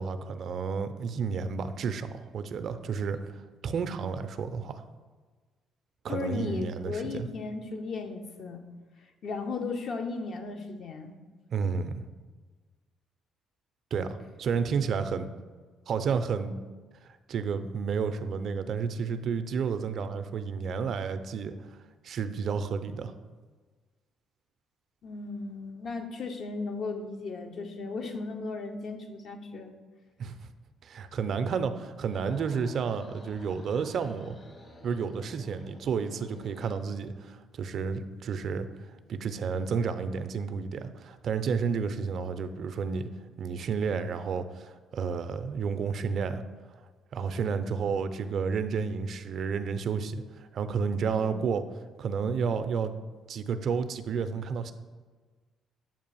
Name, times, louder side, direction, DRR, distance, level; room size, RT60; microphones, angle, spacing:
voice 1, 0.0-3.3 3.6-4.8 6.0-7.3 11.5-12.0 13.9-15.3 15.9-16.5 17.3-21.5 22.0-23.1 30.2-30.4 30.8-34.4 34.8-38.7 39.1-43.1 43.4-46.4 47.1-51.6 52.0-52.9 53.3-54.7, right 5 dB, 60° right, 10 dB, 0.4 m, -31 dB
voice 2, 6.1-8.7 9.2-11.2 25.0-29.8 51.2-51.5, left 4 dB, 60° left, 5 dB, 0.7 m, -36 dB
sound 1, 31.9-36.9, left 2 dB, 40° left, 0.9 m, -52 dB
7.3 x 2.5 x 5.4 m, 1.4 s
supercardioid pair, 70°, 0 cm